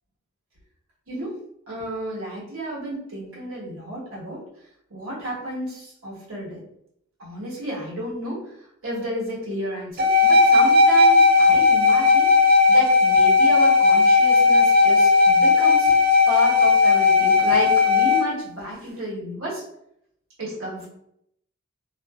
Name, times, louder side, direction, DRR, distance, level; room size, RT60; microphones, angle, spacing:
voice 1, 1.7-4.4 4.9-6.6 7.2-8.4 8.8-12.3 12.7-15.9 16.3-19.6 20.4-20.9, right 1 dB, 70° right, -6 dB, 1.2 m, -31 dB
sound 1, 10.0-18.2, left 4 dB, 45° right, 0.4 m, -16 dB
2.6 x 2.5 x 2.2 m, 0.75 s
head